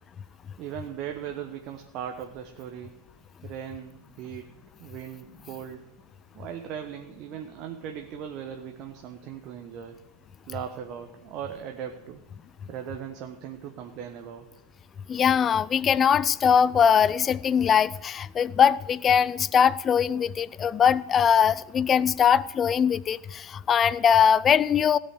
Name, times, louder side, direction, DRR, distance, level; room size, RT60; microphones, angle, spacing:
voice 1, 0.6-2.9 3.4-4.5 4.8-5.9 6.3-10.0 10.5-12.2 12.7-14.5, right 9 dB, 40° right, 4 dB, 1.0 m, -38 dB
voice 2, 15.1-25.0, left 7 dB, 25° left, 20 dB, 0.4 m, -21 dB
16.5 x 5.5 x 8.1 m, 0.96 s
figure-of-eight pair, 90°, 0 cm